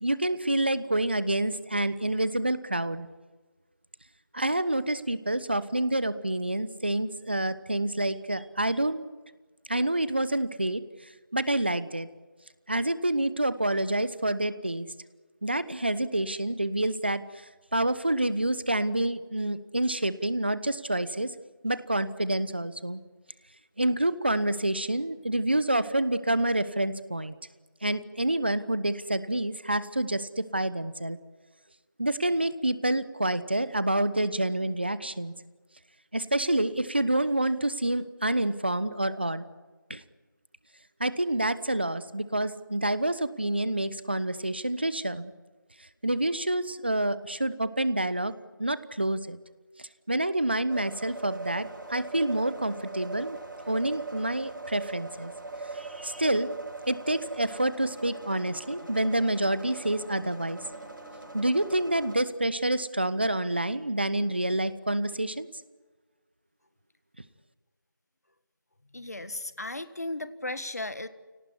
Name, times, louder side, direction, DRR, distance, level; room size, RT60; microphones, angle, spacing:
voice 1, 0.0-3.1 4.3-9.1 9.7-12.1 12.7-14.9 15.4-21.3 21.6-23.0 23.8-27.4 27.8-31.2 32.0-35.3 36.1-39.4 39.9-40.0 41.0-45.3 45.8-48.3 48.6-49.4 49.8-53.4 53.7-55.3 55.7-56.6 56.9-60.6 61.3-65.5, right 1 dB, 30° right, 15 dB, 1.0 m, -28 dB
sound 1, 50.7-62.2, right 3 dB, 70° right, 6.4 m, -41 dB
voice 2, 68.9-71.1, left 2 dB, 50° left, 12 dB, 1.6 m, -35 dB
28.5 x 18.5 x 9.9 m, 1.3 s
figure-of-eight pair, 180°, 11 cm